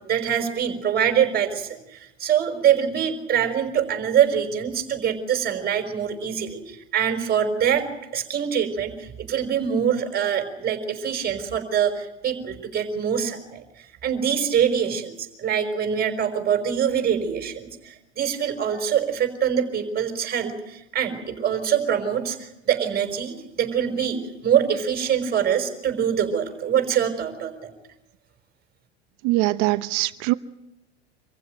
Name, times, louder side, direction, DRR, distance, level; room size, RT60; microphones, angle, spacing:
voice 1, 0.0-13.6 14.0-27.7, right 8 dB, 30° right, 5.2 m, -24 dB
voice 2, 29.2-30.3, right 19 dB, 55° right, 1.0 m, -22 dB
26.0 x 15.5 x 9.1 m
hypercardioid pair, 90°, 33 cm